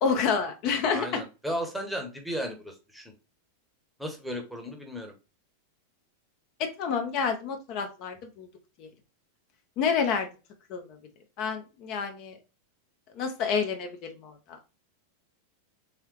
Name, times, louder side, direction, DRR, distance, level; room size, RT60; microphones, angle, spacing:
voice 1, 0.0-1.2 6.6-8.5 8.8-8.9 9.8-10.3 10.7-11.0 11.4-12.4 13.1-14.6, left 6 dB, 40° left, 5 dB, 0.6 m, -29 dB
voice 2, 0.9-3.1 4.0-5.1, equal, ahead, 2 dB, 0.9 m, -35 dB
3.6 x 3.3 x 3.0 m, 0.31 s
figure-of-eight pair, 90°, 0 cm